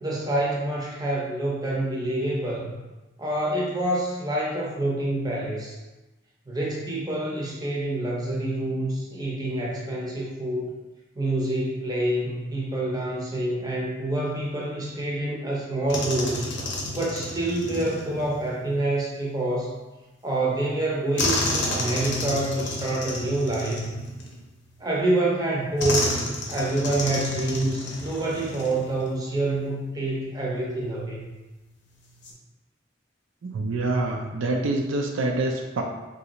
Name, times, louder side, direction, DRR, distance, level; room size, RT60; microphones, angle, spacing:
voice 1, 0.0-2.7 3.2-5.8 6.5-10.7 11.2-16.5 16.9-19.8 20.2-23.9 24.8-26.1 26.5-31.3, right 1 dB, 20° right, -4 dB, 0.6 m, -27 dB
sound 1, 15.9-18.6 21.2-24.7 25.8-29.2 29.4-29.6 32.0-32.3, left 2 dB, 60° left, 0.6 m, -30 dB
voice 2, 33.4-35.8, right 2 dB, 80° right, 2 dB, 0.4 m, -26 dB
3.1 x 2.6 x 2.9 m, 1.1 s
head